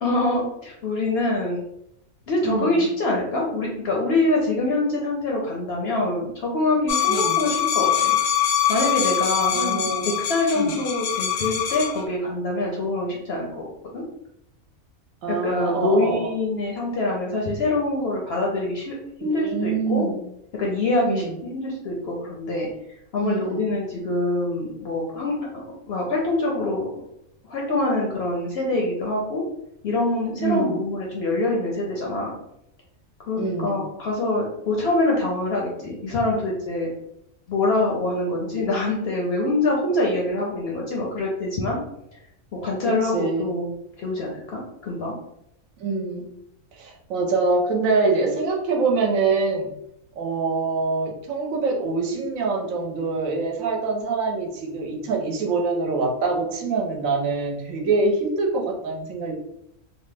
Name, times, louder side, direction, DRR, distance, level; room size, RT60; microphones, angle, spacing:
voice 1, 0.0-1.6 2.3-8.2 8.7-13.7 13.9-14.0 15.3-18.9 19.2-20.1 20.5-22.7 23.1-25.3 25.9-26.9 27.4-29.4 29.8-32.3 33.3-36.9 37.5-41.8 42.5-43.7 44.0-45.1, left 2 dB, 65° left, -2 dB, 0.7 m, -25 dB
voice 2, 2.4-2.9 7.1-7.4 9.5-10.2 10.6-10.8 15.2-16.3 19.2-20.2 21.0-21.3 23.2-23.6 30.4-30.8 33.4-33.8 42.8-43.5 45.8-46.3 46.8-49.7 50.2-59.3, right 4 dB, 75° right, 1 dB, 1.0 m, -25 dB
sound 1, 6.9-12.0, left 10 dB, 85° left, 1.0 m, -23 dB
2.8 x 2.1 x 3.2 m, 0.78 s
omnidirectional pair, 1.5 m